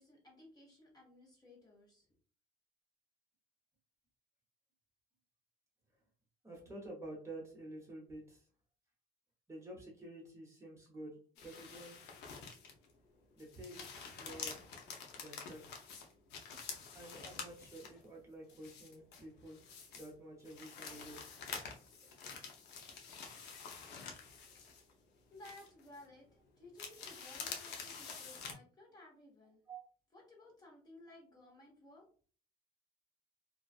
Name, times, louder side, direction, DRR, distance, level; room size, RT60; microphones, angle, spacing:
voice 1, 0.0-2.1 25.3-26.3 26.5-29.6 30.1-32.1, left 1 dB, 25° left, -2 dB, 1.1 m, -58 dB
voice 2, 6.4-8.4 9.5-11.2 11.4-12.0 13.4-14.7 15.2-15.8 16.9-19.6 19.9-21.2 29.7-29.8, right 1 dB, 15° right, -3 dB, 0.9 m, -50 dB
sound 1, 11.4-12.9 13.3-18.1 18.5-20.1 20.4-25.1 25.4-26.0 26.8-28.5, left 5 dB, 85° left, 0.6 m, -48 dB
2.5 x 2.3 x 2.3 m, 0.41 s
cardioid pair, 110°, 17 cm